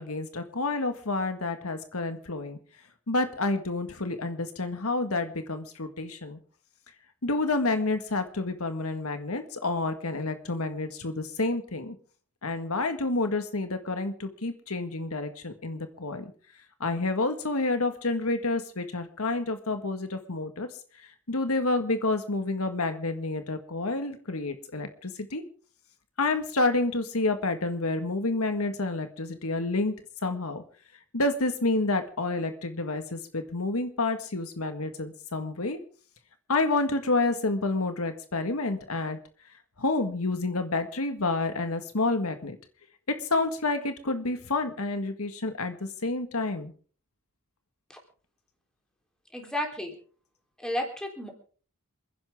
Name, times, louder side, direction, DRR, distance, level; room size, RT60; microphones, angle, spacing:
voice 1, 0.0-2.6 3.1-6.4 7.2-11.9 12.4-16.3 16.8-20.7 21.3-25.4 26.2-29.9 30.2-30.6 31.1-35.8 36.5-39.2 39.8-42.6 43.3-46.7, left 2 dB, 85° left, 8 dB, 1.7 m, -29 dB
voice 2, 49.3-50.0 50.6-51.3, left 1 dB, 5° left, 1 dB, 3.7 m, -32 dB
28.0 x 10.5 x 3.7 m, 0.42 s
head